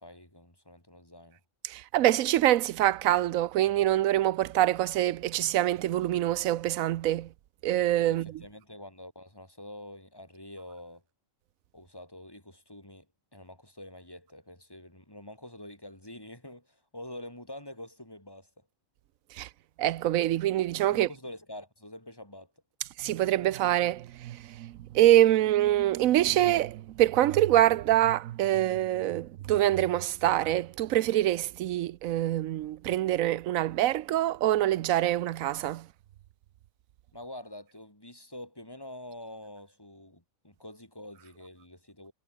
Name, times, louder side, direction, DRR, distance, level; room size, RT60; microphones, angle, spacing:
voice 1, 0.0-1.4 8.1-11.0 11.7-13.1 13.3-18.5 20.9-22.5 37.1-42.1, left 1 dB, 15° left, 5.6 m, -46 dB
voice 2, 1.6-7.3 7.6-8.3 19.4-19.5 19.8-21.1 23.0-35.9, right 13 dB, 85° right, 1.0 m, -25 dB
omnidirectional pair, 1.4 m